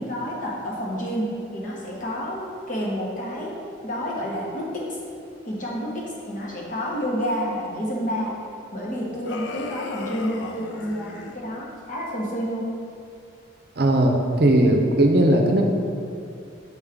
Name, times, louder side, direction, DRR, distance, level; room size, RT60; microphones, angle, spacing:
voice 1, 0.0-3.5 3.8-4.8 5.4-8.3 8.7-12.7, equal, 40° left, -5 dB, 1.3 m, -29 dB
sound 1, 9.2-11.4, left 3 dB, 65° left, 0.4 m, -35 dB
voice 2, 13.8-15.6, right 1 dB, 55° right, 2 dB, 0.7 m, -18 dB
6.2 x 5.3 x 3.6 m, 2.4 s
head